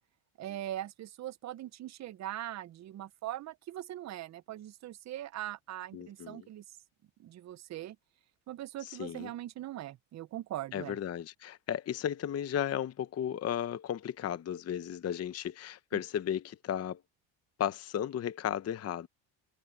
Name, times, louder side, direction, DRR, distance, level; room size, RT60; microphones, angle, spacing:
voice 1, 0.4-6.6 7.2-8.0 8.5-11.0 15.9-16.0, right 13 dB, 35° right, 0.5 m, -41 dB
voice 2, 5.9-6.5 8.8-9.3 10.7-17.0 17.6-19.1, left 10 dB, 30° left, 0.7 m, -35 dB
cardioid pair, 120°, 48 cm